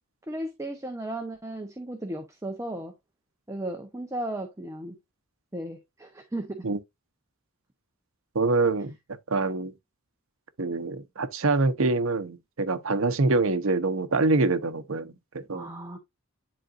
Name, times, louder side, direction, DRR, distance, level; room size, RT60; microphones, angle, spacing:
voice 1, 0.3-2.9 3.5-5.0 5.5-6.7 15.5-16.0, right 1 dB, 15° right, 0.7 m, -35 dB
voice 2, 8.3-9.0 9.3-9.7 10.6-15.7, right 3 dB, 65° right, 0.8 m, -25 dB
10.5 x 3.8 x 2.5 m
head